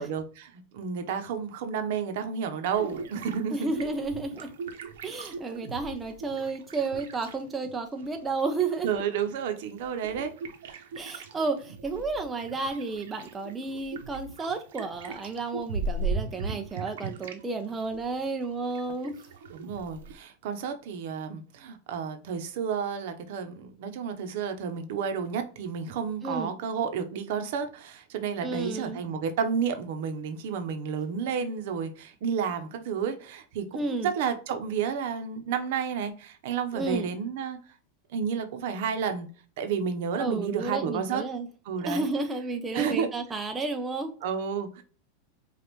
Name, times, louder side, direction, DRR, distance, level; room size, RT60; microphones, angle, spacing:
voice 1, 0.0-3.6 8.8-10.3 10.7-10.8 19.5-37.6 38.1-39.3 39.6-41.2 41.6-42.1 42.7-43.1 44.2-44.8, right 7 dB, 60° right, 0.8 m, -31 dB
sound 1, 2.7-7.7 8.0-17.4 17.7-20.1, right 3 dB, 85° right, 0.9 m, -39 dB
voice 2, 3.5-4.5 5.0-9.0 11.0-19.2 26.2-26.5 28.4-29.0 33.7-34.1 36.7-37.1 40.2-41.5 41.8-44.1, right 3 dB, 10° right, 0.4 m, -32 dB
5.1 x 2.4 x 3.0 m
supercardioid pair, 160°, 0 cm